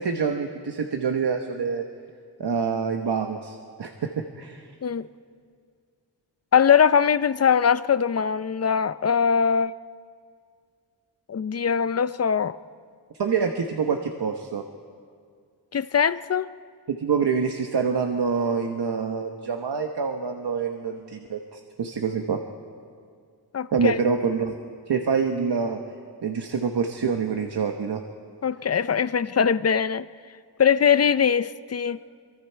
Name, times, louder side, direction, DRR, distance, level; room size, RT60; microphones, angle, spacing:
voice 1, 0.0-1.8 2.4-4.7 13.2-14.6 16.9-22.4 23.7-24.5 24.9-25.8 26.2-28.0, right 5 dB, 70° right, 1.2 m, -26 dB
voice 2, 6.5-9.7 11.3-12.6 15.7-16.5 23.5-23.9 28.4-30.1 30.6-32.0, left 7 dB, 40° left, 0.5 m, -21 dB
26.5 x 24.0 x 4.5 m
wide cardioid pair, 100°, 41 cm